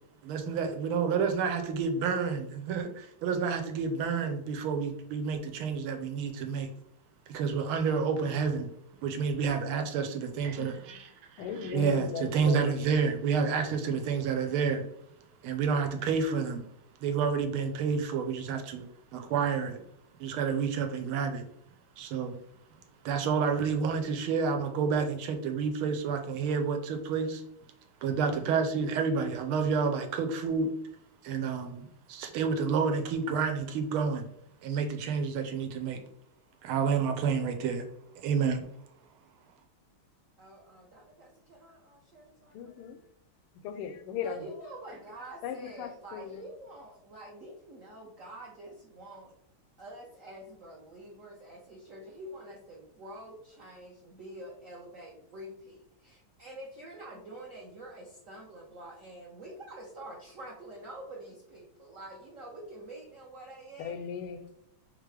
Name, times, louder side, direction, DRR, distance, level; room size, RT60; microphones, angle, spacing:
voice 1, 0.2-6.7 7.3-8.7 9.0-14.8 15.4-16.6 17.0-18.9 19.1-19.8 20.2-21.4 22.0-22.4 23.0-27.4 28.0-30.7 31.2-34.3 34.6-36.0 36.6-37.9 38.2-38.6, right 5 dB, 85° right, 5 dB, 1.5 m, -29 dB
voice 2, 11.4-12.8 42.5-43.0 43.6-44.5 45.4-46.4 63.8-64.5, left 7 dB, 90° left, 9 dB, 1.5 m, -37 dB
voice 3, 40.4-42.8 44.2-49.3 49.8-64.0, right 1 dB, 65° right, -2 dB, 0.8 m, -47 dB
3.7 x 3.6 x 3.3 m, 0.76 s
omnidirectional pair, 2.3 m